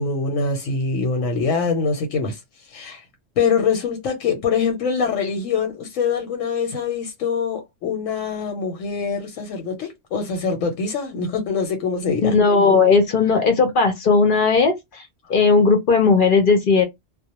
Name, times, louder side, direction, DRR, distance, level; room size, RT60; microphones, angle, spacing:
voice 1, 0.0-2.4 2.7-3.0 3.4-12.3, left 5 dB, 90° left, 1.0 m, -24 dB
voice 2, 12.2-15.0 15.3-16.8, left 4 dB, 55° left, 0.6 m, -16 dB
2.2 x 2.0 x 2.8 m
omnidirectional pair, 1.3 m